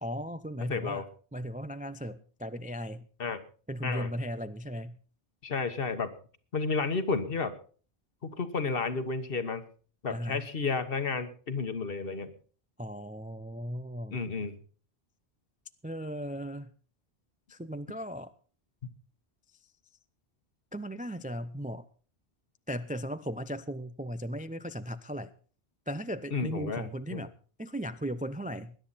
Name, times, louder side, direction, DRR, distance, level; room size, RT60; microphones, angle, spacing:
voice 1, 0.0-1.0 1.3-3.1 3.7-5.0 10.1-10.5 12.8-14.2 15.8-16.7 17.5-18.3 19.5-19.6 20.7-21.9 22.7-25.3 25.9-27.3 27.6-28.8, equal, 15° right, 12 dB, 0.3 m, -37 dB
voice 2, 0.7-1.0 3.2-3.4 3.8-4.1 5.4-6.1 6.5-7.5 8.2-9.6 10.0-12.3 14.1-14.5 26.3-27.2, left 4 dB, 60° left, 10 dB, 1.4 m, -32 dB
20.5 x 10.5 x 4.1 m, 0.41 s
omnidirectional pair, 1.1 m